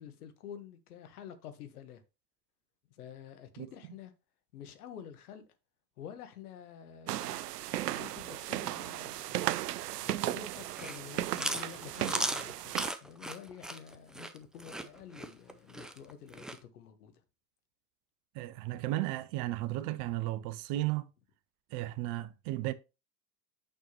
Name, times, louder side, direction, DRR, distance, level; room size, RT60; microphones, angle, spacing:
voice 1, 0.0-2.0 3.0-4.1 4.5-5.4 6.0-7.5 7.8-9.4 10.0-16.5 16.7-17.1, left 8 dB, 70° left, 1.5 m, -49 dB
sound 1, 7.1-12.9, right 14 dB, 80° right, 0.5 m, -35 dB
Chewing mastication, 10.6-16.6, right 1 dB, ahead, 0.4 m, -37 dB
voice 2, 18.3-21.1 21.7-22.7, right 16 dB, 40° right, 0.8 m, -34 dB
8.9 x 6.2 x 3.0 m
hypercardioid pair, 90°, 47 cm